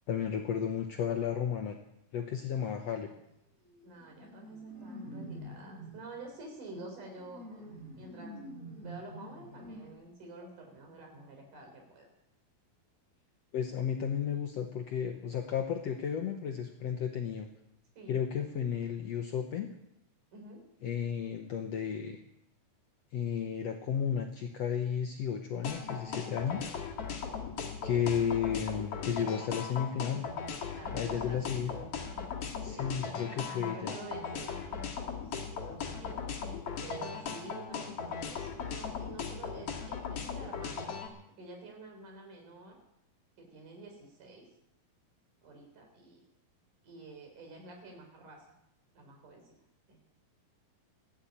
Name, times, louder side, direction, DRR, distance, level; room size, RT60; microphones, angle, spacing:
voice 1, 0.1-1.8 2.1-3.1 13.5-17.5 18.1-19.7 20.8-22.2 23.1-26.7 27.8-30.3 30.9-31.7 32.6-33.9, left 8 dB, 70° left, 4 dB, 1.6 m, -33 dB
sound 1, 3.1-3.3 3.6-6.0 6.7-9.9, right 1 dB, 20° right, 3.5 m, -47 dB
voice 2, 3.8-7.7 8.0-8.3 8.8-12.1 18.0-18.2 20.3-20.6 30.7-31.8 32.7-36.3 36.8-40.9 41.4-42.8 43.4-44.5 45.4-46.2 46.8-48.4 49.0-49.5 49.9-50.0, right 2 dB, 60° right, 2 dB, 5.5 m, -49 dB
sound 2, 25.6-41.1, left 6 dB, 50° left, 2.5 m, -38 dB
16.0 x 10.5 x 8.8 m, 0.81 s
omnidirectional pair, 4.1 m